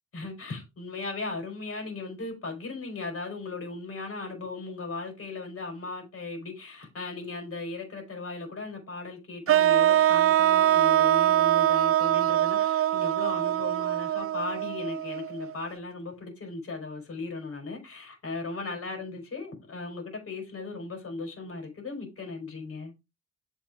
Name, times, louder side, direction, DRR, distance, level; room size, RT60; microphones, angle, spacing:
voice 1, 0.1-22.9, left 3 dB, 50° left, 4.5 m, -37 dB
sound 1, 9.5-15.5, right 12 dB, 50° right, 0.4 m, -23 dB
7.5 x 4.7 x 4.6 m
cardioid pair, 90°, 30 cm